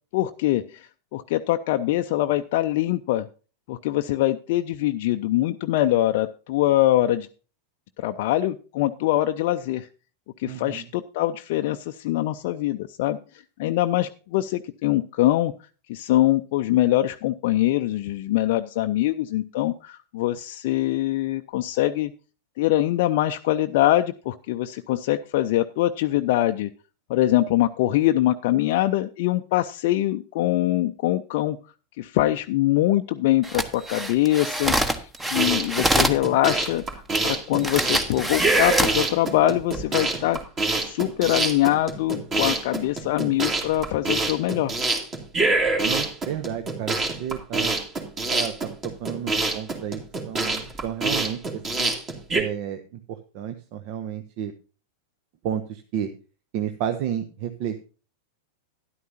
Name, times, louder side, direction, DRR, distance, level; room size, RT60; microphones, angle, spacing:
voice 1, 0.1-3.3 3.7-7.3 8.0-9.9 10.4-13.2 13.6-15.5 15.9-22.1 22.6-26.7 27.1-31.6 32.0-36.8 37.2-40.4 40.8-44.7, left 14 dB, 50° left, 6 dB, 0.5 m, -23 dB
voice 2, 10.4-10.9 45.8-47.8 48.3-50.0 50.3-51.9 52.3-52.8 53.1-54.5 55.4-56.1 56.5-57.8, right 9 dB, 45° right, 9 dB, 0.9 m, -31 dB
sound 1, 33.4-36.2 37.1-37.2 37.6-39.0 39.6-39.8, right 1 dB, 10° right, 1.1 m, -25 dB
sound 2, 35.2-52.4, right 2 dB, 25° right, 2.5 m, -25 dB
12.5 x 11.0 x 2.7 m, 0.35 s
figure-of-eight pair, 90°, 0 cm